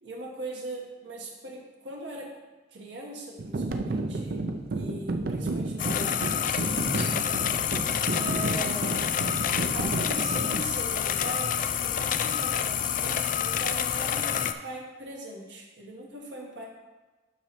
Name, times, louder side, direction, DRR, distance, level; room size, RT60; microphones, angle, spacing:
voice 1, 0.0-2.3 2.7-4.4 4.7-7.1 8.1-8.9 9.7-16.7, right 2 dB, 85° right, -2 dB, 1.4 m, -40 dB
sound 1, 3.4-10.7, right 2 dB, 55° right, 0.5 m, -32 dB
sound 2, 5.8-14.5, left 9 dB, 45° left, 0.3 m, -28 dB
12.0 x 4.3 x 3.1 m, 1.2 s
head